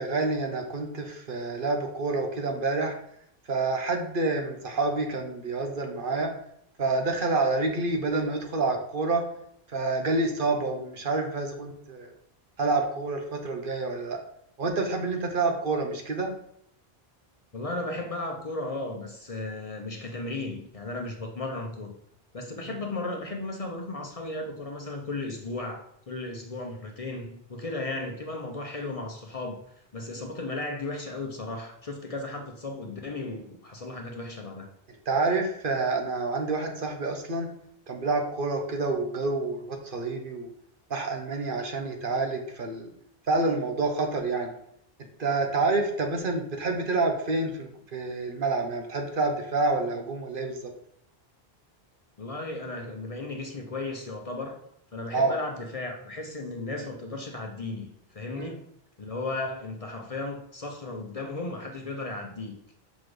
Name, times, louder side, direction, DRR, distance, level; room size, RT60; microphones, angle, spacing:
voice 1, 0.0-3.0 3.5-6.3 6.8-9.2 9.7-12.1 12.6-14.2 14.6-16.3 22.7-22.8 35.1-37.5 37.9-40.5 40.9-42.9 43.3-44.5 45.2-50.7 55.1-55.4 58.3-58.5, right 3 dB, 60° right, 3 dB, 1.1 m, -28 dB
voice 2, 17.5-21.9 22.3-29.6 29.9-34.7 52.2-54.6 54.9-58.7 59.0-62.6, left 2 dB, 40° left, 2 dB, 0.8 m, -35 dB
6.2 x 4.2 x 4.9 m, 0.71 s
omnidirectional pair, 1.0 m